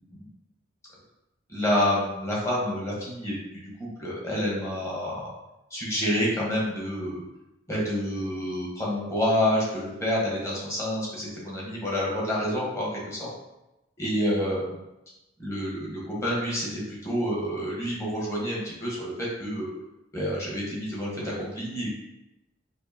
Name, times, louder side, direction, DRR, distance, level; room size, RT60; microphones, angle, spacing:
voice 1, 1.5-5.3 5.7-7.2 7.7-13.3 14.0-14.7 15.4-19.7 20.1-22.0, equal, 15° left, -5 dB, 1.2 m, -28 dB
4.5 x 2.5 x 2.8 m, 0.94 s
head